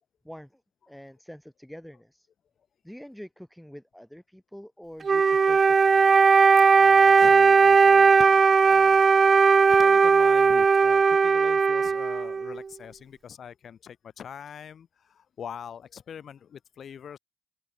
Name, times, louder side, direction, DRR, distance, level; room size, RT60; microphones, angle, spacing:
voice 1, 0.2-0.6 0.9-2.3 2.8-6.2, equal, ahead, 7.4 m, -46 dB
Wind instrument woodwind instrument, 5.0-12.6, right 5 dB, 35° right, 0.5 m, -18 dB
voice 2, 6.7-17.2, left 8 dB, 60° left, 6.7 m, -43 dB
open air
wide cardioid pair, 150°, 0 cm